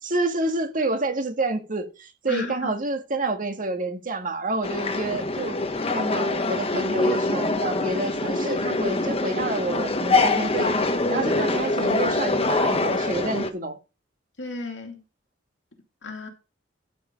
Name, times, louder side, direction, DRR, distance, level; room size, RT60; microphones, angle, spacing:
voice 1, 0.0-5.6 5.9-10.7 11.1-13.8, right 2 dB, 45° right, 1.8 m, -28 dB
voice 2, 2.3-2.7 14.4-15.0 16.0-16.3, left 3 dB, 70° left, 2.4 m, -33 dB
sound 1, 4.6-13.5, left 2 dB, 30° left, 1.1 m, -24 dB
12.0 x 5.4 x 5.2 m
head